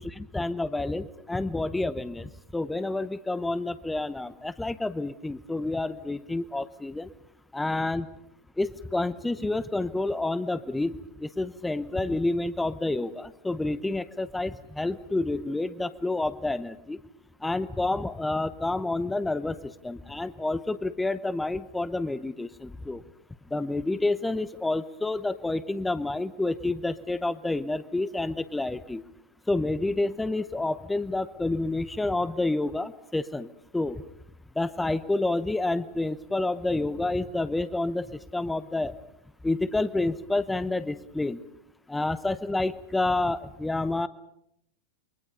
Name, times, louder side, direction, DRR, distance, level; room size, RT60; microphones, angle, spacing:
voice 1, 0.0-7.1 7.5-8.1 8.6-17.0 17.4-23.0 23.5-29.0 29.5-33.5 33.7-34.0 34.6-38.9 39.4-41.4 41.9-44.1, left 2 dB, 5° left, 15 dB, 0.8 m, -29 dB
29.0 x 23.0 x 5.4 m, 0.76 s
figure-of-eight pair, 90°, 0 cm